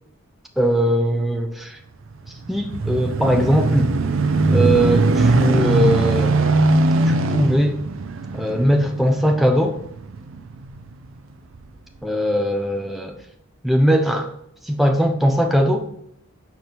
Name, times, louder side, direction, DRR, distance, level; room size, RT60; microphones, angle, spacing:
voice 1, 0.6-1.8 2.5-3.9 4.5-6.4 7.0-7.8 8.3-9.8 12.0-13.2 13.6-14.3 14.6-15.9, equal, ahead, 4 dB, 0.6 m, -20 dB
sound 1, 2.1-10.9 11.5-11.7, right 2 dB, 70° right, 0.5 m, -20 dB
6.0 x 4.5 x 5.2 m, 0.74 s
head